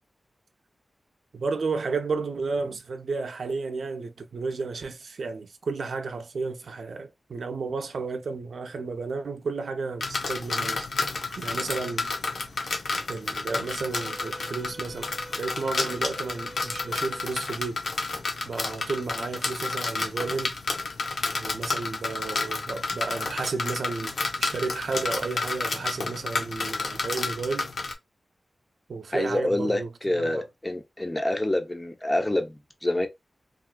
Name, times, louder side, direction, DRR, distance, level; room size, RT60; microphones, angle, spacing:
voice 1, 1.3-10.9 11.4-12.1 13.1-15.1 15.4-17.9 18.4-20.6 21.3-27.7 28.9-30.5, right 4 dB, 85° right, 0.4 m, -32 dB
sound 1, 10.0-27.9, left 3 dB, 85° left, 0.6 m, -31 dB
Wind instrument woodwind instrument, 13.8-17.6, right 1 dB, 20° right, 0.4 m, -46 dB
voice 2, 29.1-33.1, left 1 dB, 20° left, 0.6 m, -27 dB
3.2 x 2.4 x 2.2 m
wide cardioid pair, 85°, 0 cm